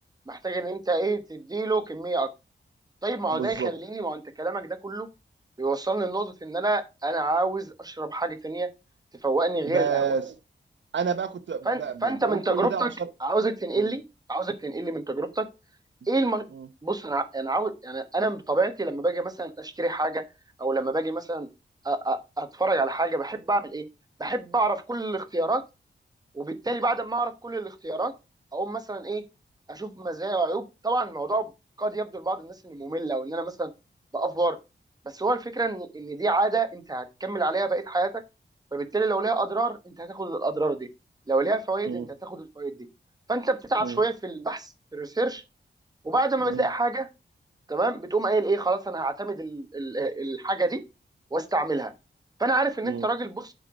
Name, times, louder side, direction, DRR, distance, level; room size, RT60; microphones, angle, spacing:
voice 1, 0.3-2.3 3.0-5.1 5.6-8.7 9.2-10.0 11.6-12.9 13.2-14.0 14.3-15.5 16.1-16.4 16.8-20.2 20.6-21.5 21.8-23.9 24.2-25.6 26.3-28.1 28.5-29.2 29.7-31.5 31.8-33.7 34.1-34.6 35.1-38.2 38.7-40.9 41.3-42.9 43.3-45.4 46.0-47.1 47.7-50.8 51.3-51.9 52.4-53.5, right 2 dB, 20° right, 1.2 m, -27 dB
voice 2, 3.3-3.7 9.7-10.3 10.9-13.1 13.8-13.9 16.5-16.7 41.9-42.1 43.8-44.0 46.4-46.6 52.8-53.1, right 6 dB, 75° right, 0.9 m, -30 dB
7.6 x 4.8 x 5.1 m
wide cardioid pair, 105°, 19 cm